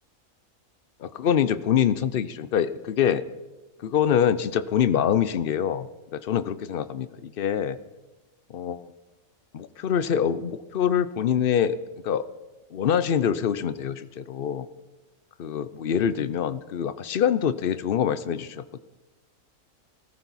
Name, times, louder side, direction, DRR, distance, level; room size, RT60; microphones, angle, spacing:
voice 1, 1.0-3.2 3.8-7.8 8.5-8.9 9.5-11.8 12.0-12.3 12.7-14.7 15.4-18.8, left 8 dB, 55° left, 14 dB, 0.6 m, -25 dB
20.5 x 14.5 x 4.1 m, 1.1 s
omnidirectional pair, 1.5 m